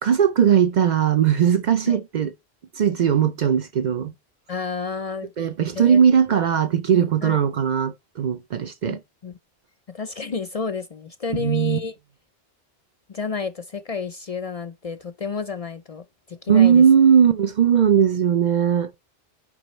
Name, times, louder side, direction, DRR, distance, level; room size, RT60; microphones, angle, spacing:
voice 1, 0.0-2.3 2.8-4.1 5.4-9.0 11.3-11.8 16.5-18.9, right 8 dB, 55° right, 0.6 m, -18 dB
voice 2, 4.5-5.3 5.7-6.0 6.9-7.4 8.9-9.3 9.9-11.9 13.1-16.8, left 5 dB, 45° left, 0.5 m, -30 dB
9.6 x 5.2 x 3.1 m
omnidirectional pair, 1.0 m